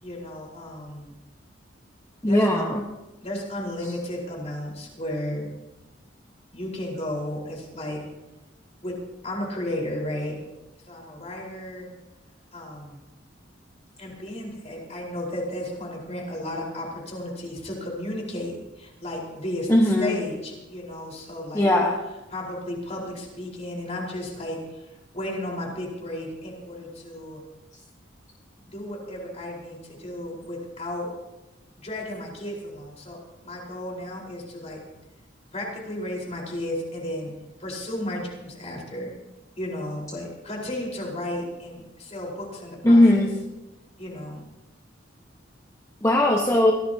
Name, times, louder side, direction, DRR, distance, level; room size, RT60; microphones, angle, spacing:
voice 1, 0.0-1.1 2.2-2.7 3.2-5.5 6.5-8.0 8.8-9.0 9.2-10.4 10.9-11.9 12.5-13.0 14.0-21.7 22.3-24.9 25.1-27.4 28.6-31.1 31.8-34.8 35.5-37.3 37.6-39.1 39.6-43.3 44.0-44.4, left 1 dB, 35° left, -2 dB, 4.7 m, -34 dB
voice 2, 2.2-2.8 19.7-20.1 21.5-22.0 42.8-43.3 46.0-46.7, left 1 dB, 15° left, -1 dB, 1.3 m, -18 dB
23.0 x 16.5 x 2.9 m, 1.0 s
head